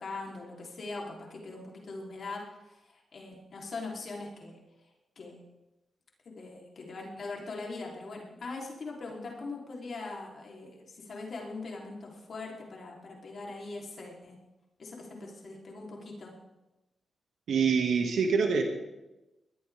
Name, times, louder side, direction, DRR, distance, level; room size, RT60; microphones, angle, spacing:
voice 1, 0.0-4.9 5.1-5.4 6.2-14.4 14.8-16.3, left 3 dB, 60° left, -1 dB, 3.4 m, -41 dB
voice 2, 17.5-18.6, right 5 dB, 90° right, 3 dB, 2.0 m, -25 dB
20.0 x 13.5 x 3.5 m, 1.0 s
cardioid pair, 90°, 0 cm